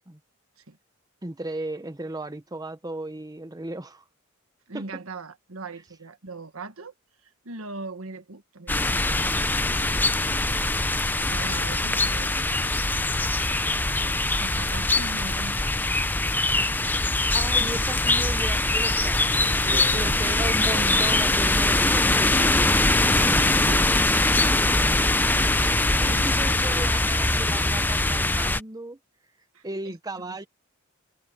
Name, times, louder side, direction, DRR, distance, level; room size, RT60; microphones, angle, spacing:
voice 1, 1.2-4.0 4.7-4.8 9.6-10.4 17.3-19.2 19.6-23.2 24.5-24.8 25.6-29.0 29.6-30.5, right 2 dB, 20° right, 1.0 m, -36 dB
voice 2, 4.7-6.9 7.2-9.3 11.2-12.9 14.3-15.8 19.4-21.0 23.2-24.0 25.6-27.1 29.5-30.5, right 3 dB, 80° right, 1.6 m, -40 dB
sound 1, 8.7-28.6, left 2 dB, 10° left, 0.6 m, -22 dB
head